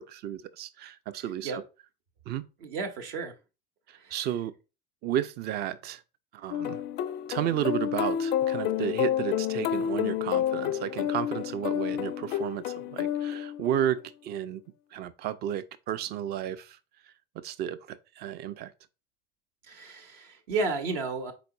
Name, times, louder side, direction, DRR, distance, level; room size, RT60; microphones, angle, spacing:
voice 1, 0.0-1.6 2.3-2.4 3.9-4.5 5.0-6.0 6.3-6.8 7.3-14.6 14.9-16.8 17.4-18.7, right 10 dB, 35° right, 0.4 m, -32 dB
voice 2, 1.2-1.6 2.6-3.3 3.9-4.2 19.6-21.3, right 3 dB, 60° right, 0.9 m, -33 dB
sound 1, 6.5-14.0, left 10 dB, 35° left, 0.4 m, -30 dB
5.0 x 4.0 x 2.6 m
figure-of-eight pair, 75°, 31 cm